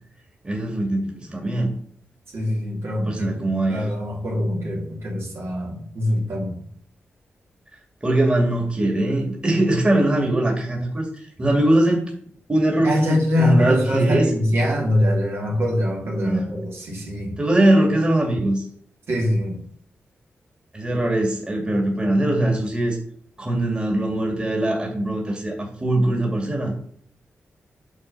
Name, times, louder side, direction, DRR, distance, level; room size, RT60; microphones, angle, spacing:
voice 1, 0.4-1.7 3.0-3.9 8.0-12.1 12.5-14.3 16.2-16.5 17.4-18.7 20.7-23.0 23.4-26.7, right 1 dB, 20° right, 0 dB, 2.4 m, -21 dB
voice 2, 2.3-6.6 12.8-17.4 19.1-19.6, left 1 dB, 65° right, -2 dB, 3.1 m, -23 dB
8.8 x 3.7 x 6.8 m, 0.63 s
cardioid pair, 90°, 5 cm